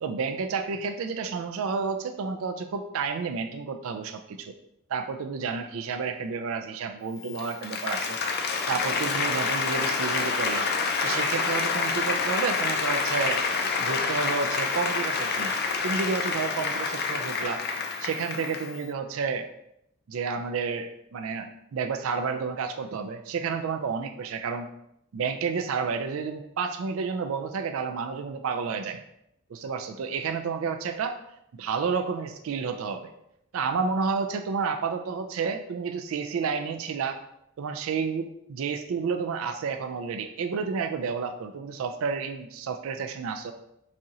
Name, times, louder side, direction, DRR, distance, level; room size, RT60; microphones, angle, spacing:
voice 1, 0.0-4.5 4.9-10.7 11.0-13.4 13.8-15.6 15.8-17.6 18.0-19.5 20.1-24.7 25.1-29.0 29.5-31.2 31.6-33.1 33.5-37.2 37.6-43.5, right 5 dB, 65° right, 6 dB, 0.3 m, -30 dB
Applause, 7.2-18.8, left 4 dB, 45° left, 0.4 m, -28 dB
4.2 x 2.7 x 3.7 m, 0.79 s
head